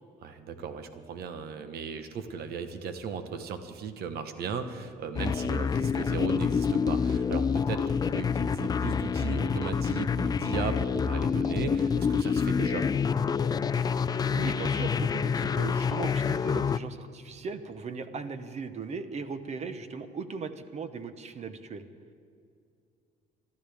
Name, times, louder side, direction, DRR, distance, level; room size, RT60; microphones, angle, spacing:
voice 1, 0.2-12.9, right 6 dB, 70° right, 8 dB, 1.2 m, -36 dB
sound 1, 5.2-16.8, left 6 dB, 25° left, 0.3 m, -27 dB
voice 2, 14.3-21.9, right 5 dB, 40° right, 10 dB, 1.0 m, -38 dB
25.0 x 13.0 x 3.5 m, 2.4 s
cardioid pair, 110°, 17 cm